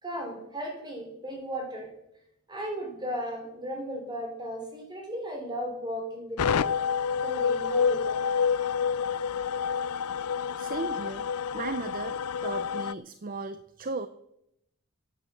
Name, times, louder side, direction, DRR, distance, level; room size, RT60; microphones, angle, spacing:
voice 1, 0.0-1.9 2.5-6.7 7.2-8.2, equal, 20° right, 2 dB, 3.9 m, -35 dB
sound 1, 6.4-12.9, left 6 dB, 80° left, 0.4 m, -28 dB
voice 2, 10.6-11.3 11.5-14.1, right 3 dB, 40° right, 12 dB, 0.6 m, -36 dB
14.5 x 9.1 x 7.8 m, 0.81 s
head